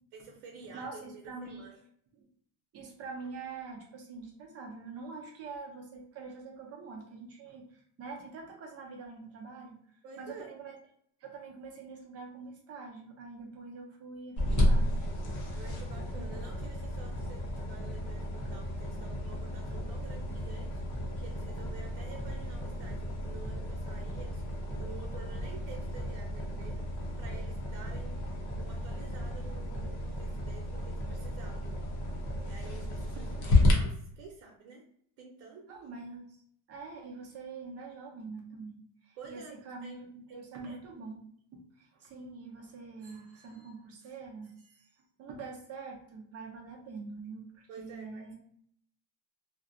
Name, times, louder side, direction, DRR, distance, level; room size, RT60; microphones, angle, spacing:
voice 1, 0.1-1.8 10.0-10.5 15.5-28.2 28.6-31.8 32.5-34.8 35.2-35.7 39.2-39.9 40.3-40.8 43.5-43.7 47.7-48.2, right 4 dB, 70° right, 0 dB, 0.9 m, -50 dB
voice 2, 0.7-1.6 2.2-2.3 2.7-10.8 11.2-15.0 16.1-16.3 35.7-36.2 36.7-41.2 41.5-44.9 45.2-48.3, right 4 dB, 30° right, 1 dB, 0.6 m, -45 dB
sound 1, 14.4-33.7, left 1 dB, 40° left, 0.6 m, -32 dB
2.4 x 2.1 x 2.4 m, 0.65 s
cardioid pair, 145°, 48 cm